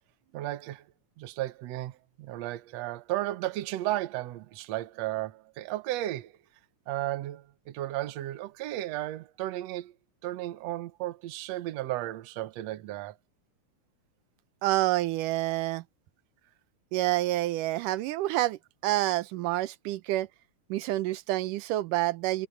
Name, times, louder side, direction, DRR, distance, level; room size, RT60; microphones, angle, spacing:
voice 1, 0.3-0.8 1.2-6.3 6.9-9.9 10.2-13.2, right 15 dB, 65° right, 1.9 m, -34 dB
voice 2, 14.6-15.8 16.9-20.3 20.7-22.5, right 16 dB, 85° right, 2.4 m, -28 dB
omnidirectional pair, 3.6 m